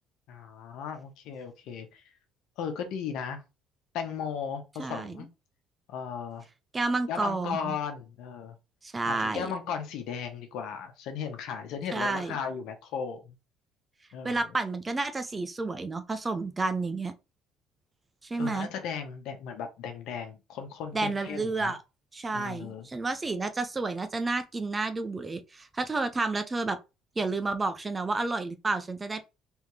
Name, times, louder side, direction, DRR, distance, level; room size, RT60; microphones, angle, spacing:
voice 1, 0.3-2.0 2.6-3.4 3.9-5.3 5.9-6.4 7.1-8.6 9.1-13.4 14.1-14.5 18.4-21.7 22.3-22.9, left 7 dB, 70° left, 1.1 m, -36 dB
voice 2, 4.8-5.3 6.7-7.8 8.8-9.5 11.9-12.4 14.2-17.1 18.3-18.7 20.9-21.8 22.1-26.8 27.2-29.2, right 3 dB, 15° right, 0.5 m, -30 dB
3.5 x 3.4 x 3.2 m
cardioid pair, 135°, 0 cm